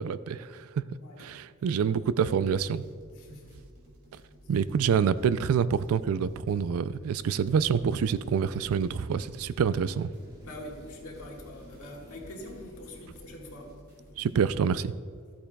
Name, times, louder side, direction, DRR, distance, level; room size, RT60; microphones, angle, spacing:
voice 1, 0.0-0.8 1.2-2.8 4.5-10.1 14.2-14.9, right 7 dB, 80° right, 16 dB, 0.3 m, -27 dB
voice 2, 1.0-1.4 3.1-3.5 10.4-13.7, left 1 dB, 85° left, -1 dB, 1.7 m, -44 dB
sound 1, 2.3-14.3, equal, 45° right, 2.3 m, -54 dB
sound 2, 7.5-13.7, equal, 20° right, 1.7 m, -52 dB
13.5 x 8.5 x 2.3 m, 2.1 s
head